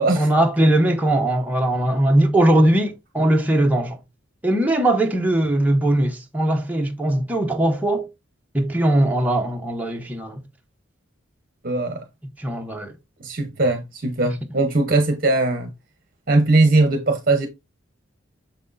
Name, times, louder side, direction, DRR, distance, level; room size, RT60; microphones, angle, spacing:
voice 1, 0.0-4.0 4.4-8.1 8.5-10.4 12.4-12.9, right 1 dB, 10° right, 0.8 m, -20 dB
voice 2, 11.6-12.0 13.2-15.7 16.3-17.5, right 2 dB, 45° right, 0.8 m, -19 dB
6.7 x 5.9 x 2.6 m
head